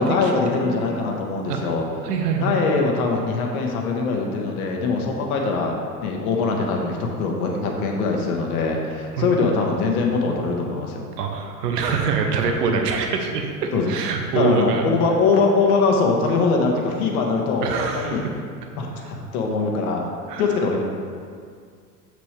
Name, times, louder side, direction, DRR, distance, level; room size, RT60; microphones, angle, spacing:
voice 1, 0.0-1.8 2.4-5.7 6.0-11.0 13.7-13.9 14.3-18.2 18.8-20.0 20.4-20.8, left 4 dB, 60° left, 1 dB, 1.4 m, -22 dB
voice 2, 0.6-1.0 1.5-1.7 2.0-2.6 9.1-9.3 11.2-14.9 17.6-18.3 19.0-19.1 20.3-20.4, right 5 dB, 70° right, 3 dB, 1.0 m, -24 dB
7.6 x 6.4 x 3.4 m, 2.1 s
hypercardioid pair, 85°, 49 cm